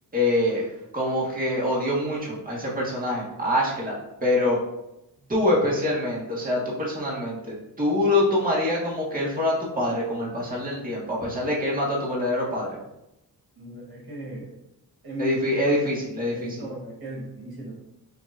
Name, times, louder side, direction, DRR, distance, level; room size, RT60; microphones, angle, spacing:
voice 1, 0.1-0.7 0.9-3.9 4.2-4.6 5.3-12.7 15.2-16.6, left 1 dB, 20° right, -5 dB, 1.7 m, -25 dB
voice 2, 13.5-14.5 15.0-15.5 16.3-17.7, right 1 dB, 70° right, -4 dB, 1.6 m, -37 dB
6.6 x 2.9 x 2.6 m, 0.87 s
cardioid pair, 70°, 39 cm